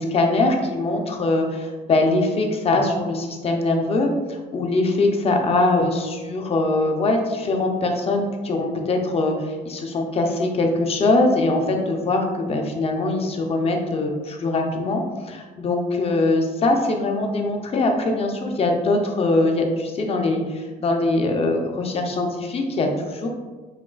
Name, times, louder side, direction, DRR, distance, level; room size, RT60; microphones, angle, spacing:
voice 1, 0.0-23.3, left 2 dB, 35° left, 3 dB, 0.6 m, -22 dB
5.6 x 2.3 x 2.3 m, 1.3 s
cardioid pair, 110°, 17 cm